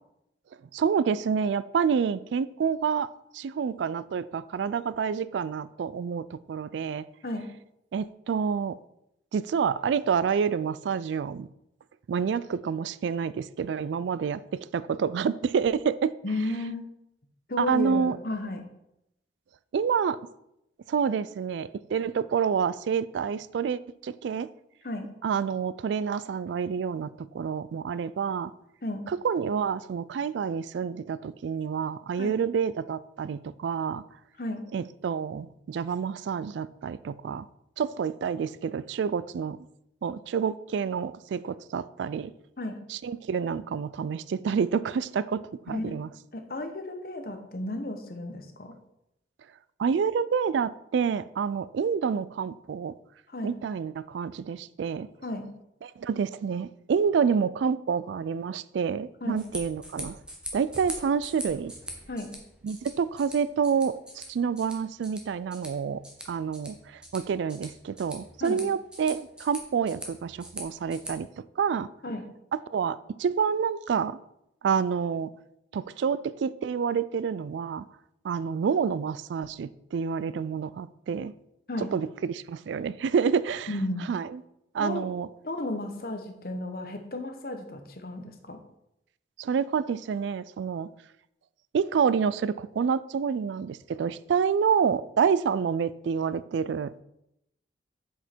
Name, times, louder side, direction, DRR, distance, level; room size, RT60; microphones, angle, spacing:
voice 1, 0.7-3.1 3.3-7.0 7.9-8.8 9.3-11.5 12.1-16.1 17.6-18.2 19.7-20.2 20.9-24.5 25.2-28.5 29.1-34.0 34.7-37.4 37.8-39.6 40.0-42.3 42.9-46.1 49.8-52.9 53.4-55.1 55.8-60.2 60.5-61.7 62.6-66.0 66.3-66.8 67.1-71.3 71.6-71.9 72.7-74.2 74.6-75.3 75.7-77.8 78.2-81.3 81.9-83.7 84.1-84.4 84.7-85.3 89.4-90.9 91.7-97.0, right 6 dB, 80° right, 0.3 m, -28 dB
voice 2, 16.2-16.9 17.5-18.6 24.8-25.1 28.8-29.0 32.2-32.4 34.4-34.7 42.6-42.8 45.7-46.0 46.3-48.8 53.3-53.5 55.2-55.5 59.2-59.4 62.1-62.3 68.4-68.6 72.0-72.2 81.7-81.9 83.7-84.1 84.8-85.1 85.4-88.6, left 2 dB, 55° left, 0.9 m, -33 dB
sound 1, 59.2-71.1, equal, 5° right, 1.0 m, -43 dB
7.8 x 5.1 x 4.4 m
head